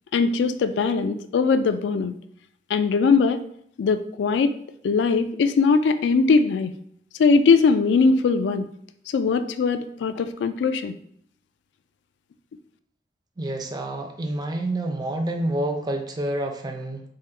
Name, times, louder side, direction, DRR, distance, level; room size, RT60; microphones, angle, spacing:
voice 1, 0.1-2.1 2.7-3.4 3.8-4.5 4.8-6.7 7.2-8.7 9.1-10.9, left 4 dB, 75° left, 10 dB, 0.3 m, -20 dB
voice 2, 13.4-17.0, right 1 dB, 25° right, 5 dB, 0.4 m, -28 dB
3.8 x 2.1 x 4.1 m, 0.66 s
head